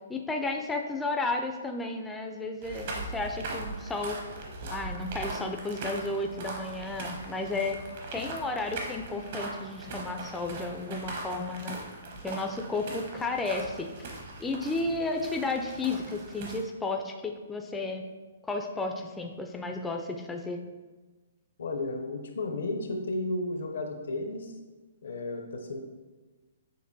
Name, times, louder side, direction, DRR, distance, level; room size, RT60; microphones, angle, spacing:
voice 1, 0.1-4.2 4.7-7.8 8.1-11.8 12.2-13.9 14.4-18.0 18.5-20.6, left 3 dB, 10° left, 3 dB, 0.3 m, -33 dB
sound 1, 2.6-16.6, right 2 dB, 55° right, 0.9 m, -40 dB
voice 2, 21.6-24.5 25.0-25.8, left 2 dB, 75° left, 4 dB, 0.6 m, -33 dB
6.4 x 2.6 x 2.6 m, 1.3 s
hypercardioid pair, 140°, 0 cm